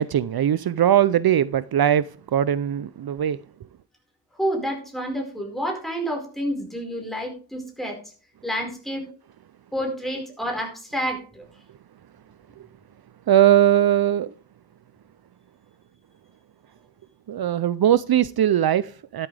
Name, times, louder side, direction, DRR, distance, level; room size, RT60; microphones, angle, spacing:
voice 1, 0.0-3.4 13.3-14.3 17.3-19.3, right 10 dB, 65° right, 0.5 m, -20 dB
voice 2, 4.3-8.0 8.4-9.1 9.7-11.4, equal, ahead, 4.7 m, -29 dB
12.5 x 12.0 x 3.3 m
wide cardioid pair, 120°, 40 cm